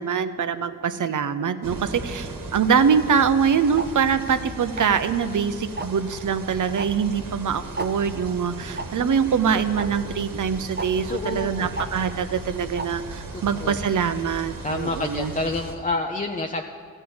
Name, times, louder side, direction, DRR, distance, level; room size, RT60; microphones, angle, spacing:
voice 1, 0.0-15.3, right 6 dB, 65° right, 10 dB, 0.7 m, -24 dB
Storm (loopable), 1.6-15.8, right 2 dB, 90° right, 1.4 m, -37 dB
Tick-tock, 3.8-3.9 4.8-5.1 5.8-6.0 6.8-6.9 7.2-7.3 7.8-7.9 8.8-8.9 9.8-9.9 10.8-10.9 11.8-11.9 12.8-12.9, right 2 dB, 30° right, 0.9 m, -30 dB
voice 2, 10.9-11.7 13.3-13.8 14.6-16.6, left 2 dB, 25° left, 3 dB, 0.7 m, -29 dB
14.0 x 5.5 x 8.7 m, 2.2 s
cardioid pair, 50°, 33 cm